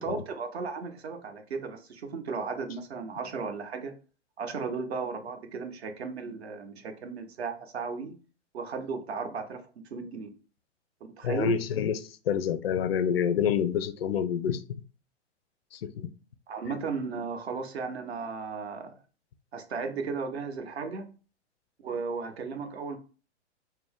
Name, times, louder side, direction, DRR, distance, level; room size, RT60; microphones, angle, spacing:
voice 1, 0.0-3.9 4.4-8.2 8.5-9.6 9.9-10.3 11.2-11.6 16.5-18.9 19.5-21.1 21.8-23.0, right 5 dB, 60° right, 0.8 m, -35 dB
voice 2, 11.2-12.0 12.3-14.6 15.7-16.1, left 8 dB, 55° left, 0.5 m, -27 dB
4.2 x 2.1 x 3.5 m
figure-of-eight pair, 110°, 36 cm